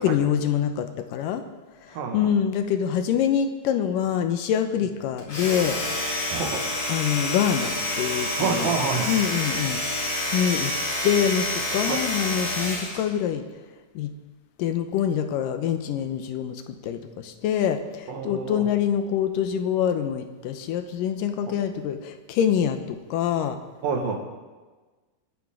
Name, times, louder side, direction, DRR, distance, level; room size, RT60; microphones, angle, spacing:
voice 1, 0.0-1.4 2.1-5.8 6.9-8.7 9.1-9.8 10.3-10.7 11.0-13.4 14.0-14.1 14.6-23.6, left 9 dB, 80° left, 8 dB, 2.4 m, -25 dB
voice 2, 1.9-2.3 4.8-4.9 6.3-6.6 8.4-9.1 11.9-12.0 18.1-18.6 23.8-24.2, right 5 dB, 75° right, 3 dB, 3.3 m, -27 dB
Domestic sounds home sounds, 5.2-13.0, left 1 dB, 45° left, 4.3 m, -28 dB
25.0 x 10.5 x 3.7 m, 1.3 s
omnidirectional pair, 4.0 m